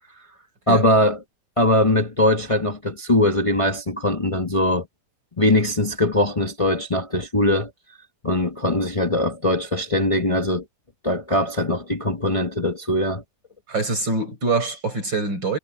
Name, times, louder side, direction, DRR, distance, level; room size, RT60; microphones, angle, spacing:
voice 1, 0.7-1.2 1.6-4.9 5.4-7.7 8.2-10.6 11.0-13.2, left 1 dB, 20° left, 1.0 m, -21 dB
voice 2, 13.7-15.6, right 3 dB, 80° right, 7.6 m, -24 dB
omnidirectional pair, 2.0 m